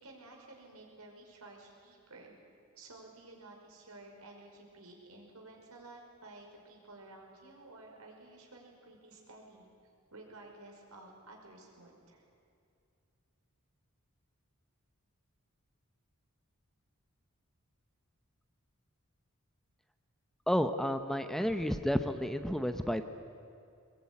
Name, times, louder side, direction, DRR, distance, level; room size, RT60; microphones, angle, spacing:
voice 1, 0.0-2.3 2.8-9.7 10.1-12.2, right 2 dB, 85° right, 1 dB, 5.6 m, -53 dB
voice 2, 20.5-23.0, equal, ahead, 8 dB, 0.8 m, -31 dB
23.0 x 21.5 x 9.8 m, 2.5 s
head